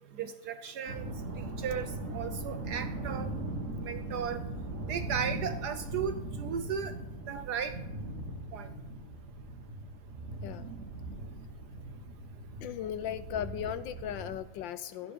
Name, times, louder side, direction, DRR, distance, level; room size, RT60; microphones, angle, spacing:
voice 1, 0.2-1.1 1.4-3.3 3.8-4.4 4.9-6.9 7.3-7.8 8.5-8.7, right 7 dB, 70° right, 10 dB, 0.9 m, -35 dB
sound 1, 0.9-14.4, right 2 dB, 40° right, 1.6 m, -39 dB
voice 2, 10.4-10.7 12.6-15.1, left 10 dB, 75° left, 13 dB, 1.1 m, -37 dB
14.0 x 9.4 x 5.1 m, 1.0 s
omnidirectional pair, 2.4 m